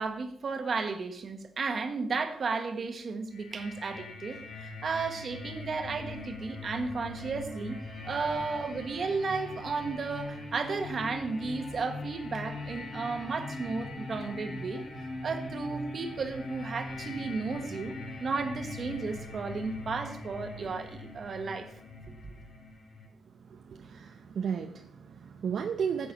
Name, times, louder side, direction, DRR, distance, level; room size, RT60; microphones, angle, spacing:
voice 1, 0.0-7.8 8.0-14.8 15.2-21.7 22.1-22.2, right 4 dB, 40° right, 7 dB, 1.3 m, -34 dB
sound 1, 3.3-23.1, left 2 dB, 40° left, 4.7 m, -41 dB
voice 2, 23.5-26.1, right 7 dB, 55° right, 5 dB, 0.7 m, -34 dB
15.0 x 6.1 x 5.9 m, 0.68 s
wide cardioid pair, 180°, 0 cm